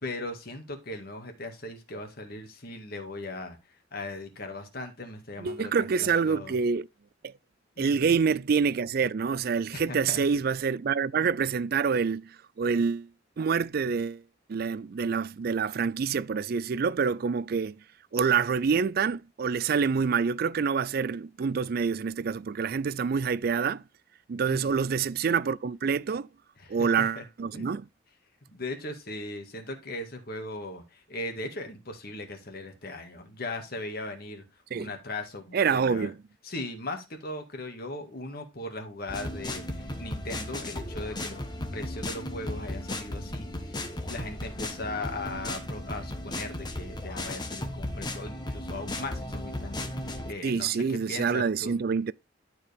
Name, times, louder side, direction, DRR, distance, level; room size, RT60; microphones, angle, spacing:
voice 1, 0.0-3.6 3.9-6.5 7.8-8.1 9.7-10.3 24.5-24.8 26.6-27.2 27.5-27.6 28.5-34.4 34.7-36.1 36.4-41.4 41.7-43.5 44.1-51.7, left 2 dB, 50° left, 2.0 m, -38 dB
voice 2, 5.4-6.9 7.2-7.3 7.8-13.1 13.4-14.2 14.5-17.7 18.1-23.8 24.3-26.3 26.7-27.9 34.7-34.9 35.5-36.2 50.4-52.1, right 6 dB, 50° right, 0.4 m, -27 dB
sound 1, 39.1-50.3, left 1 dB, 20° left, 1.2 m, -35 dB
12.0 x 4.7 x 3.4 m
head